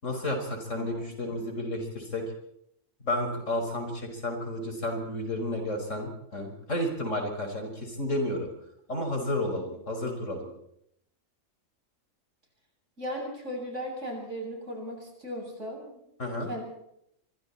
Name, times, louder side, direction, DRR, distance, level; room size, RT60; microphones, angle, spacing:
voice 1, 0.0-2.2 3.0-8.5 8.9-10.5 16.2-16.5, left 1 dB, 65° left, 4 dB, 5.9 m, -31 dB
voice 2, 0.7-1.1 13.0-16.0 16.5-16.6, equal, 60° right, 1 dB, 7.9 m, -37 dB
26.0 x 24.5 x 4.4 m, 0.74 s
omnidirectional pair, 1.4 m